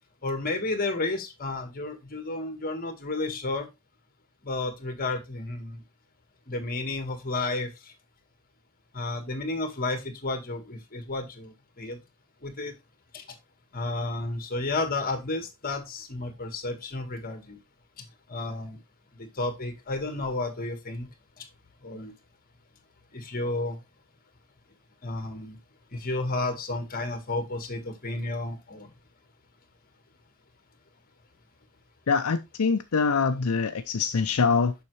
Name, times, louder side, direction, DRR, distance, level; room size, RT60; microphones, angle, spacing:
voice 1, 0.2-3.7 4.4-5.8 6.5-7.9 8.9-12.0 12.4-12.7 13.1-13.3 13.7-17.6 18.0-18.8 19.1-21.1 21.4-21.5 21.8-22.1 23.1-23.8 25.0-25.6 25.9-28.9, left 2 dB, 40° left, 1.6 m, -32 dB
voice 2, 32.1-34.7, left 5 dB, 80° left, 0.6 m, -24 dB
7.0 x 5.7 x 3.2 m
head